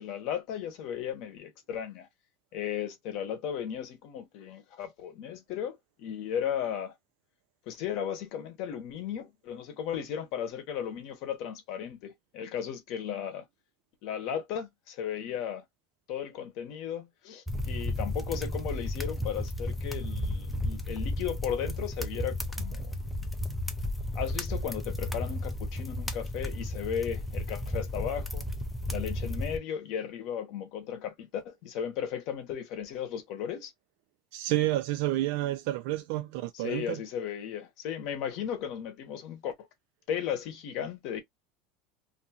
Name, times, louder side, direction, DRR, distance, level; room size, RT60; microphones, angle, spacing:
voice 1, 0.0-2.1 2.5-6.9 7.7-13.5 14.0-15.6 16.1-22.9 24.1-28.5 28.9-33.7 36.5-39.5 40.1-41.2, left 9 dB, 55° left, 0.8 m, -35 dB
sound 1, 17.5-29.6, left 1 dB, 5° left, 0.5 m, -33 dB
voice 2, 34.3-37.0, right 15 dB, 65° right, 0.3 m, -30 dB
2.6 x 2.3 x 2.7 m
supercardioid pair, 155°, 0 cm